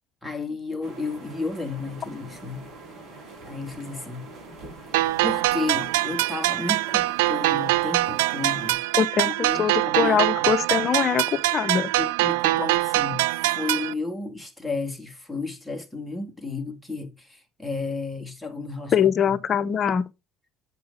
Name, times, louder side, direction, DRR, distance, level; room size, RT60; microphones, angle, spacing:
voice 1, 0.2-2.7 3.5-4.3 5.2-8.8 9.3-10.5 12.0-19.4, left 3 dB, ahead, 2.2 m, -33 dB
sound 1, 0.8-8.7, right 2 dB, 40° right, 5.3 m, -44 dB
sound 2, 4.9-13.9, right 18 dB, 85° right, 0.3 m, -23 dB
voice 2, 9.0-11.9 18.9-20.1, left 7 dB, 40° left, 0.8 m, -23 dB
8.1 x 4.6 x 3.8 m
supercardioid pair, 95°, 0 cm